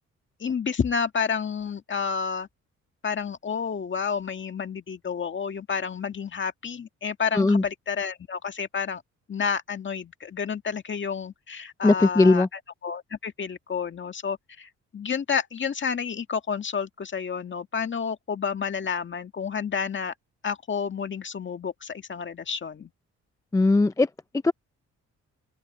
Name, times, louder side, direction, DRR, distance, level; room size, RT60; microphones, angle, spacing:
voice 1, 0.4-2.5 3.0-9.0 9.3-12.5 12.8-20.1 20.4-22.9, left 6 dB, 40° left, 1.9 m, -30 dB
voice 2, 11.8-12.5 23.5-24.1 24.4-24.5, left 2 dB, 10° left, 0.4 m, -19 dB
open air
cardioid pair, 90°, 30 cm